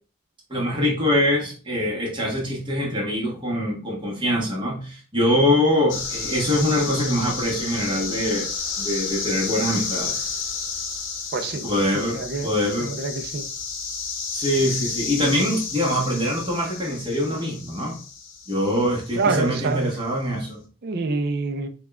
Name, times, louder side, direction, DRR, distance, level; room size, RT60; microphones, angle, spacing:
voice 1, 0.5-8.5 8.8-10.2 11.6-12.9 14.3-18.0 18.5-20.6, left 1 dB, 25° right, 1.0 m, -23 dB
sound 1, 5.9-19.9, left 5 dB, 60° left, 0.7 m, -32 dB
voice 2, 11.3-11.6 12.1-12.5 12.8-13.4 19.2-19.9 20.8-21.7, right 3 dB, 50° right, 0.5 m, -26 dB
5.9 x 2.3 x 2.2 m
head